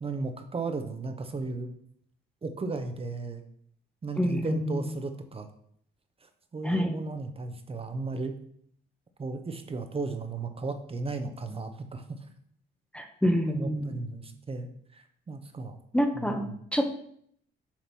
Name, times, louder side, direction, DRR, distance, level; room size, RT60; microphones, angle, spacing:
voice 1, 0.0-1.7 2.4-3.4 4.0-5.5 6.2-8.3 9.2-12.3 13.5-15.8 16.1-16.6, right 3 dB, 30° right, 7 dB, 0.7 m, -35 dB
voice 2, 4.2-4.6 6.6-6.9 12.9-14.0 15.9-17.0, equal, 5° left, 4 dB, 0.7 m, -27 dB
7.3 x 2.9 x 5.3 m, 0.66 s
cardioid pair, 90°, 20 cm